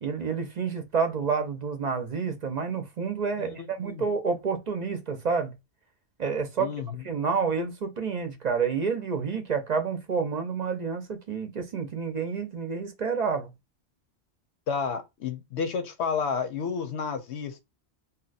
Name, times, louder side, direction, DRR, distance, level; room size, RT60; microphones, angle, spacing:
voice 1, 0.0-5.5 6.2-6.7 7.0-13.5, right 5 dB, 50° right, 0.6 m, -29 dB
voice 2, 3.4-4.0 6.6-6.9 14.7-17.6, left 6 dB, 85° left, 0.9 m, -31 dB
2.7 x 2.2 x 3.9 m
omnidirectional pair, 1.1 m